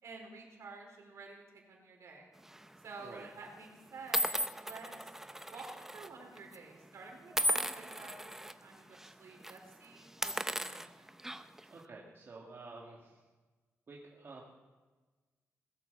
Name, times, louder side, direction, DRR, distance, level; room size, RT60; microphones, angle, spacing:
voice 1, 0.0-2.3 2.8-4.9 5.5-11.1, right 4 dB, 75° right, 1 dB, 4.6 m, -51 dB
sound 1, 2.5-2.8 3.5-3.6 4.1-6.1 6.4-6.6 7.3-8.5 8.9-9.1 9.4-9.6 10.1-11.6, equal, 10° right, 0.7 m, -36 dB
voice 2, 3.0-3.3 11.7-13.2 13.9-14.5, right 3 dB, 50° right, -3 dB, 2.6 m, -50 dB
20.5 x 9.3 x 7.1 m, 1.3 s
cardioid pair, 105°, 5 cm